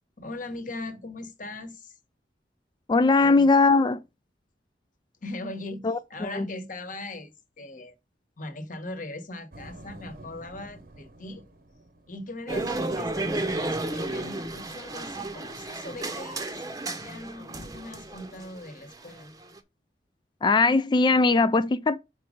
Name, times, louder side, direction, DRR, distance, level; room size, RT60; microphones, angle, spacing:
voice 1, 0.2-2.0 3.2-3.5 5.2-7.9 8.4-11.4 12.1-16.6 17.0-19.3, left 2 dB, 50° left, 1.2 m, -40 dB
voice 2, 2.9-4.0 5.8-6.0 6.3-6.5 20.4-22.0, left 3 dB, 25° left, 0.3 m, -20 dB
sound 1, 9.5-13.2, right 1 dB, 55° right, 0.9 m, -49 dB
sound 2, 12.5-19.6, right 2 dB, 20° right, 0.8 m, -33 dB
5.2 x 4.4 x 5.0 m
head